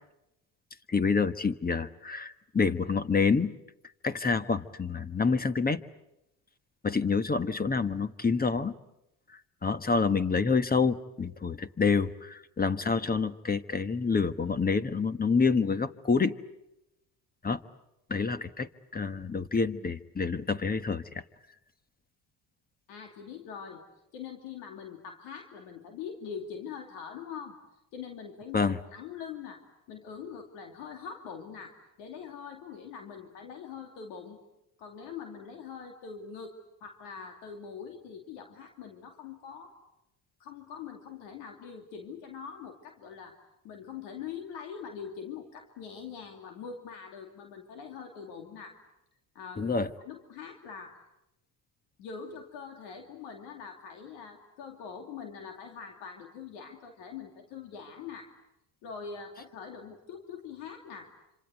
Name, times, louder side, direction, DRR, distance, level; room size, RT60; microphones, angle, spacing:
voice 1, 0.9-3.5 4.0-5.8 6.8-8.7 9.3-16.3 17.4-17.6 18.1-21.2 28.5-28.8 49.6-49.9, left 4 dB, 20° left, 13 dB, 1.3 m, -27 dB
voice 2, 22.9-23.8 24.1-27.6 27.9-29.6 29.9-34.4 34.8-36.5 36.8-39.7 40.4-43.4 43.6-48.8 49.3-51.0 52.0-58.3 58.8-61.1, left 6 dB, 85° left, 4 dB, 2.7 m, -43 dB
27.0 x 26.5 x 8.2 m, 0.88 s
supercardioid pair, 75°, 40 cm